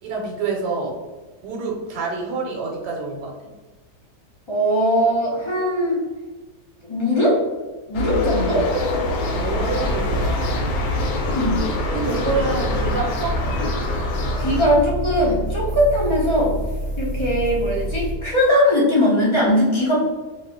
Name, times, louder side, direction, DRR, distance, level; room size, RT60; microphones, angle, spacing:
voice 1, 0.0-0.9 1.4-3.3 8.7-8.8 9.2-10.3 11.9-13.3, right 4 dB, 80° right, -1 dB, 1.2 m, -27 dB
voice 2, 4.5-6.0 6.8-7.4 7.9-8.7 11.3-11.6 14.4-16.5 17.0-20.0, equal, 40° left, -6 dB, 0.4 m, -20 dB
sound 1, 7.9-14.6, left 2 dB, 85° left, 1.2 m, -25 dB
sound 2, 9.6-18.1, equal, 60° left, 0.8 m, -27 dB
2.7 x 2.4 x 3.5 m, 1.2 s
omnidirectional pair, 1.8 m